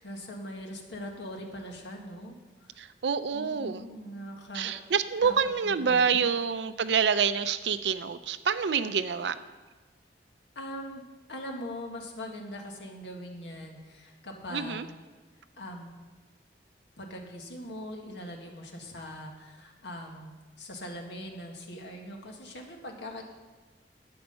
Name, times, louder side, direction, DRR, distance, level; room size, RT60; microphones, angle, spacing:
voice 1, 0.0-2.4 2.6-2.9 3.3-4.7 5.2-5.3 5.6-6.3 10.6-11.0 11.3-14.9 15.6-15.9 17.0-23.2, equal, 80° left, 1 dB, 1.8 m, -41 dB
voice 2, 2.8-3.9 4.5-9.4 14.5-14.8, right 6 dB, 80° right, 12 dB, 0.5 m, -27 dB
11.5 x 8.7 x 5.5 m, 1.3 s
head